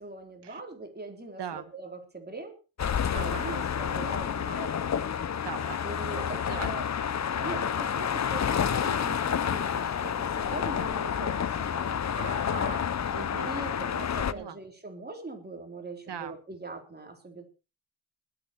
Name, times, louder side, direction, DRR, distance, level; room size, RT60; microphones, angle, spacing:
voice 1, 0.0-2.6 3.1-4.7 5.8-6.9 7.3-11.9 13.4-17.4, right 3 dB, 20° right, 3 dB, 3.9 m, -41 dB
voice 2, 1.4-1.7 3.1-3.6 5.4-5.8 6.5-6.7 12.2-13.5 14.3-14.6 16.1-16.4, right 8 dB, 55° right, 12 dB, 1.7 m, -39 dB
sound 1, 2.8-14.3, left 8 dB, 35° left, 0.7 m, -29 dB
21.0 x 8.7 x 4.5 m, 0.33 s
cardioid pair, 115°, 50 cm